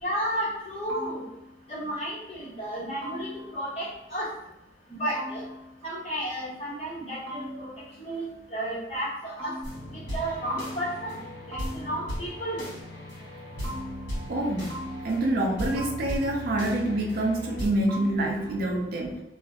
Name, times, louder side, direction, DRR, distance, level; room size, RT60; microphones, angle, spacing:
voice 1, 0.0-1.2 1.7-4.3 4.9-5.4 5.8-7.7 8.0-8.2 8.5-9.5 9.9-11.1 11.5-12.6, right 1 dB, 35° left, -8 dB, 1.1 m, -32 dB
sound 1, 0.9-1.7 3.0-3.8 5.1-5.9 7.3-8.1 9.4-10.2 10.5-11.2 11.5-12.3 13.6-14.4 14.7-15.5 15.8-16.6 17.9-18.5, equal, 90° right, 0.7 m, -40 dB
sound 2, 9.6-17.7, equal, 65° left, 1.2 m, -37 dB
voice 2, 14.3-14.7 15.0-19.2, right 1 dB, 55° right, 1 dB, 0.4 m, -26 dB
2.4 x 2.0 x 2.6 m, 0.89 s
head